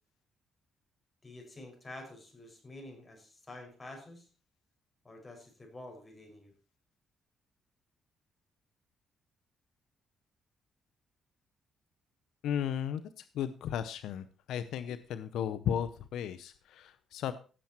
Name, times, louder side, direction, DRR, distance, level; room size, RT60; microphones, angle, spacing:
voice 1, 1.2-4.3 5.0-6.5, left 2 dB, 25° left, 3 dB, 5.5 m, -48 dB
voice 2, 12.4-17.3, left 9 dB, 80° left, 13 dB, 0.6 m, -35 dB
16.5 x 7.3 x 4.4 m, 0.37 s
cardioid pair, 90°, 0 cm